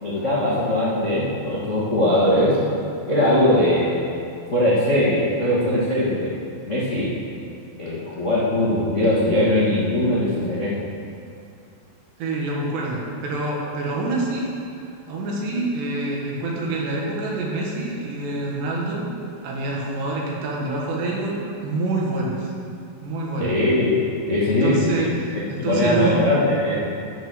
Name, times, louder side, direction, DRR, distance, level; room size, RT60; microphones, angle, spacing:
voice 1, 0.0-2.6 3.1-4.0 4.5-6.3 6.6-7.1 7.8-10.7 23.4-24.0 24.3-25.0 25.3-26.8, left 1 dB, 65° left, -8 dB, 0.7 m, -20 dB
voice 2, 12.2-14.5 15.1-19.1 19.4-22.5 23.0-23.5 24.4-26.2, right 2 dB, 75° right, -3 dB, 3.9 m, -26 dB
13.5 x 6.1 x 6.9 m, 2.5 s
omnidirectional pair, 5.1 m